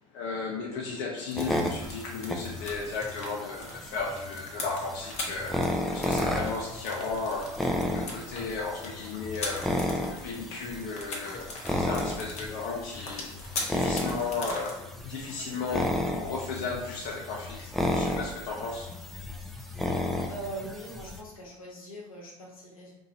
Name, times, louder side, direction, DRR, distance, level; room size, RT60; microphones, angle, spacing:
voice 1, 0.1-19.1, left 4 dB, 60° left, -3 dB, 0.6 m, -35 dB
sound 1, 1.3-14.7, left 2 dB, 40° left, 0.9 m, -41 dB
sound 2, 1.3-21.2, left 1 dB, ahead, 0.4 m, -33 dB
voice 2, 20.3-22.9, right 2 dB, 85° left, -3 dB, 1.1 m, -41 dB
2.8 x 2.7 x 3.9 m, 0.99 s
figure-of-eight pair, 75°, 18 cm